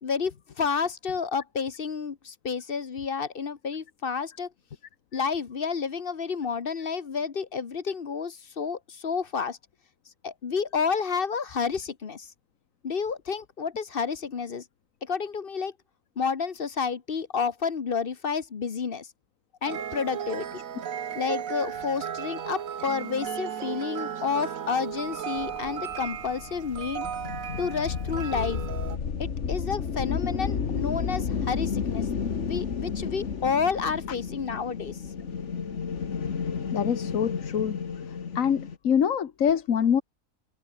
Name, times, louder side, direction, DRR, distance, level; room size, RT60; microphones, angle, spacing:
voice 1, 0.0-4.5 5.1-9.6 10.2-12.3 12.8-14.6 15.0-15.7 16.2-19.1 19.6-20.6 21.1-27.1 27.6-28.6 29.2-32.1 32.4-35.0, left 5 dB, 45° left, 1.2 m, -30 dB
sound 1, 19.6-29.0, right 8 dB, 80° right, 1.5 m, -35 dB
sound 2, 25.4-38.8, left 6 dB, 60° left, 1.7 m, -32 dB
voice 2, 36.7-37.8 38.3-40.0, left 8 dB, 75° left, 1.6 m, -24 dB
omnidirectional pair, 1.4 m